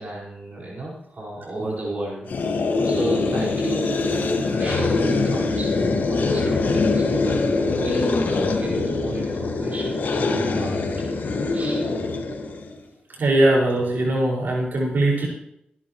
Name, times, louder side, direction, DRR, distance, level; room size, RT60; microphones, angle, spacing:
voice 1, 0.0-10.2 10.6-11.1 11.5-11.8 13.1-13.5, right 2 dB, 50° right, -5 dB, 5.1 m, -34 dB
sound 1, 2.3-12.7, left 3 dB, 70° left, 1.9 m, -23 dB
voice 2, 13.2-15.3, right 1 dB, 70° right, -3 dB, 5.6 m, -20 dB
23.5 x 11.0 x 3.2 m, 0.77 s
wide cardioid pair, 105°, 3 cm